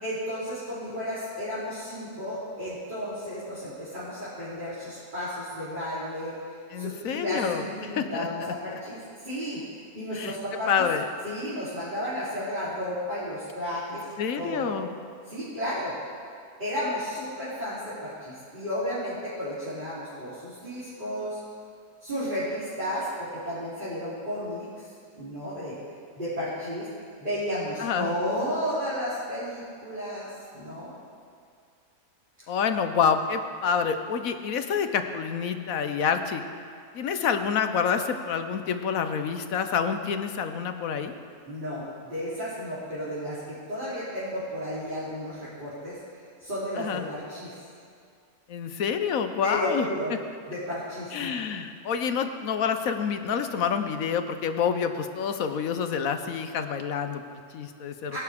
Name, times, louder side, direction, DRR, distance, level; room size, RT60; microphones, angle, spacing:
voice 1, 0.0-6.3 6.8-10.9 11.2-14.1 14.4-14.8 15.3-16.0 16.6-21.4 22.0-24.9 25.2-25.8 26.2-26.9 27.2-30.3 30.5-30.9 41.5-46.0 46.4-47.6 49.4-50.1 50.5-51.3 58.1-58.2, equal, 30° right, -12 dB, 3.6 m, -33 dB
voice 2, 6.7-8.5 10.1-10.4 10.7-11.1 14.2-14.9 27.8-28.1 32.5-36.4 36.9-41.1 46.8-47.1 48.5-50.2 51.1-58.2, left 6 dB, 70° left, 8 dB, 1.2 m, -28 dB
20.0 x 11.5 x 3.5 m, 2.2 s
omnidirectional pair, 1.6 m